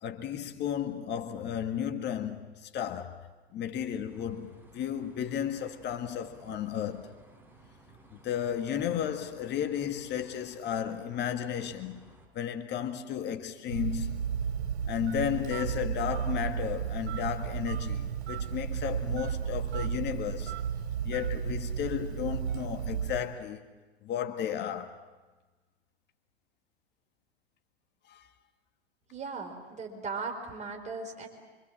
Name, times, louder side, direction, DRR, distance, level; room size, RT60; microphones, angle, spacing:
voice 1, 0.0-3.3 3.5-7.1 8.2-12.1 12.3-14.4 14.9-20.5 21.0-23.6 24.0-25.0 28.1-28.3, left 9 dB, 35° left, 1.7 m, -34 dB
sound 1, 4.1-12.3, right 2 dB, 5° right, 5.5 m, -57 dB
Telephone, 13.7-23.4, right 8 dB, 75° right, 3.1 m, -33 dB
voice 2, 29.1-31.3, right 4 dB, 20° right, 4.8 m, -38 dB
26.0 x 26.0 x 7.6 m
hypercardioid pair, 105°, 32 cm